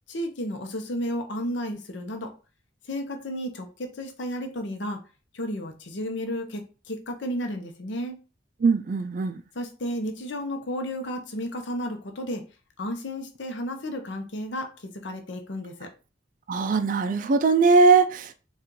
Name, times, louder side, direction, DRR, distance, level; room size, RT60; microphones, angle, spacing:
voice 1, 0.1-2.3 2.9-5.0 5.3-8.2 9.5-12.4 12.8-15.9, equal, 65° left, 0.7 m, -32 dB
voice 2, 8.6-9.4 16.5-18.3, right 4 dB, 40° right, 0.3 m, -20 dB
4.2 x 2.4 x 3.7 m
head